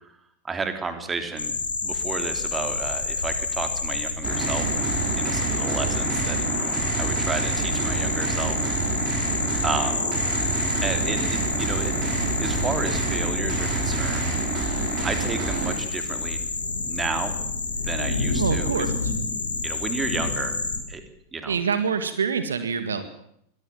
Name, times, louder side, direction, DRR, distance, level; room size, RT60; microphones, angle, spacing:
voice 1, 0.4-1.5 1.8-4.6 5.2-8.6 9.6-10.0 10.8-11.9 12.4-14.3 15.0-16.5 16.9-17.4 17.8-18.9 19.6-20.6 20.9-21.0 21.3-21.6, right 4 dB, 15° right, 7 dB, 3.4 m, -32 dB
sound 1, 1.4-20.8, left 3 dB, 75° left, 4.5 m, -28 dB
sound 2, 4.2-15.8, right 4 dB, 35° right, 5.5 m, -28 dB
voice 2, 18.4-19.1 21.5-23.0, right 6 dB, 70° right, 10 dB, 2.0 m, -26 dB
23.0 x 18.5 x 7.5 m, 0.71 s
figure-of-eight pair, 90°, 0 cm